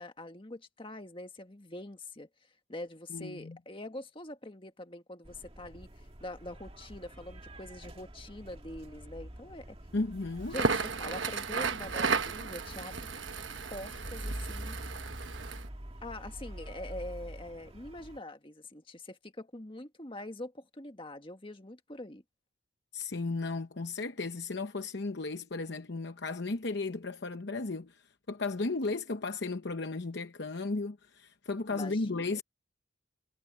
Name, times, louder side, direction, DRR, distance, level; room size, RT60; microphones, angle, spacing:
voice 1, 0.0-2.3 2.7-9.8 10.5-13.1 13.7-14.8 16.0-22.2 31.7-32.4, left 1 dB, 25° left, 1.7 m, -44 dB
voice 2, 3.1-3.6 9.9-10.6 22.9-32.4, left 3 dB, 55° left, 0.8 m, -35 dB
sound 1, 5.3-18.2, right 1 dB, 30° right, 1.8 m, -46 dB
Crackle, 10.4-15.7, right 4 dB, 70° right, 1.3 m, -34 dB
head